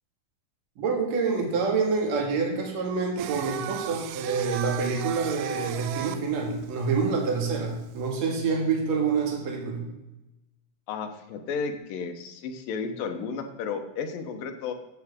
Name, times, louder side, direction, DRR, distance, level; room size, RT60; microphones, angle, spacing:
voice 1, 0.8-9.9, right 4 dB, 55° right, 1 dB, 2.9 m, -27 dB
Singing, 3.2-8.1, right 12 dB, 80° right, 1.9 m, -36 dB
voice 2, 10.9-14.7, left 5 dB, 90° left, 7 dB, 2.7 m, -33 dB
13.5 x 7.9 x 3.6 m, 0.98 s
omnidirectional pair, 3.9 m